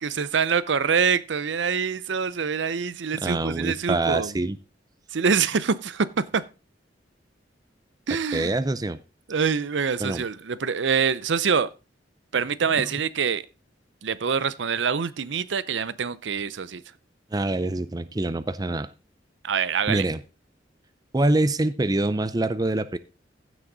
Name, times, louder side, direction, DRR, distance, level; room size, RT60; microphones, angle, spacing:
voice 1, 0.0-4.3 5.1-6.4 8.1-8.5 9.3-11.7 12.3-13.4 14.0-16.8 19.4-20.0, right 6 dB, 75° right, 0.6 m, -25 dB
voice 2, 3.2-4.6 8.3-9.0 10.0-10.2 17.3-18.9 19.9-20.2 21.1-23.0, right 2 dB, 20° right, 0.5 m, -25 dB
15.0 x 6.4 x 3.9 m
head